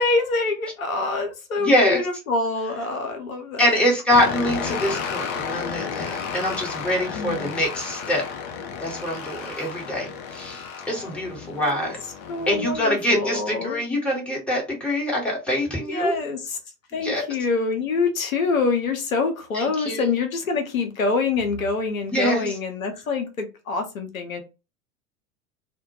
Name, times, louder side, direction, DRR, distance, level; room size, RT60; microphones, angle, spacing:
voice 1, 0.0-3.8 7.1-7.6 9.6-9.7 11.6-11.9 12.3-13.8 15.8-16.6 16.9-24.4, left 4 dB, 75° left, 0.7 m, -26 dB
voice 2, 1.6-2.0 3.6-8.2 8.8-12.0 12.5-16.1 17.0-17.2 19.5-20.1 22.0-22.5, left 1 dB, 5° left, 1.1 m, -24 dB
sound 1, 4.1-12.8, left 6 dB, 45° left, 0.5 m, -32 dB
2.1 x 2.1 x 2.7 m
figure-of-eight pair, 80°, 41 cm